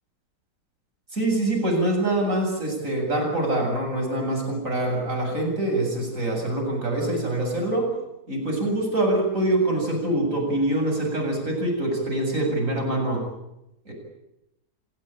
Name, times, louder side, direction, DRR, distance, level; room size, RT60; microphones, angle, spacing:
voice 1, 1.1-8.0 8.3-13.3 13.8-13.9, right 1 dB, 45° right, 1 dB, 8.1 m, -24 dB
28.5 x 17.5 x 9.1 m, 0.89 s
omnidirectional pair, 1.8 m